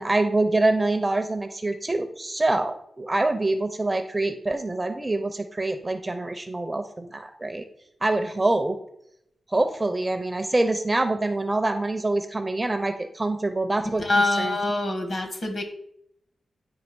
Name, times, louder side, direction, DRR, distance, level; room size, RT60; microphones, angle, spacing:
voice 1, 0.0-7.7 8.0-8.8 9.5-14.0 14.4-14.6, right 2 dB, 15° right, 8 dB, 0.5 m, -25 dB
voice 2, 13.9-15.6, left 2 dB, 40° left, 5 dB, 1.3 m, -25 dB
9.0 x 3.3 x 6.0 m, 0.74 s
wide cardioid pair, 165°, 0 cm